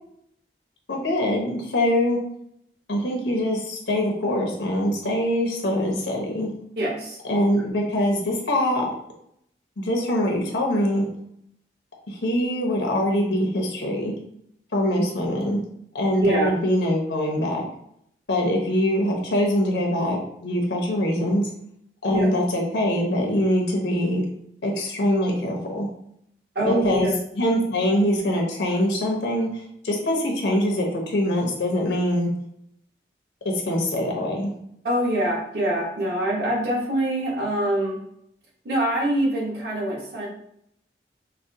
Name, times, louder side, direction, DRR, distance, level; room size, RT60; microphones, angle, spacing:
voice 1, 0.9-2.2 2.9-6.5 7.2-8.9 9.8-11.1 12.1-14.1 14.7-15.6 15.9-17.7 18.3-21.4 22.0-24.2 24.6-25.9 26.6-32.3 33.4-34.5, left 1 dB, 85° left, 0 dB, 0.8 m, -23 dB
voice 2, 6.8-7.2 16.2-16.5 22.1-22.3 26.5-27.1 34.8-38.0 38.6-40.3, right 1 dB, 70° right, -3 dB, 1.1 m, -24 dB
4.9 x 2.1 x 2.7 m, 0.73 s
head